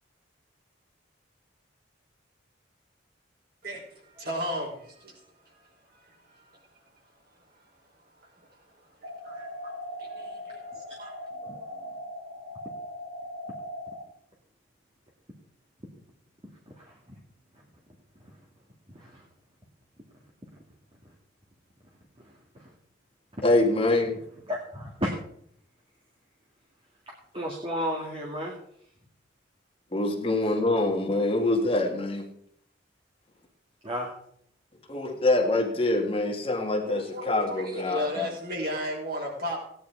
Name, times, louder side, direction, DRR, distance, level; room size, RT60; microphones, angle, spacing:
voice 1, 3.6-5.1 5.9-6.4 9.0-9.7 10.0-11.1 36.8-39.6, left 1 dB, 50° right, -1 dB, 5.2 m, -35 dB
sound 1, 9.0-14.0, left 1 dB, 90° right, 2.8 m, -39 dB
voice 2, 11.4-11.9 16.7-17.0 18.2-18.4 18.9-19.3 22.2-22.7 23.4-23.5 24.5-25.1 27.1-28.6 30.4-30.5 33.8-34.1, equal, 30° right, -1 dB, 2.1 m, -34 dB
voice 3, 23.4-24.2 29.9-32.3 34.9-38.3, left 2 dB, 30° left, 2 dB, 2.0 m, -25 dB
16.5 x 10.0 x 4.6 m, 0.68 s
head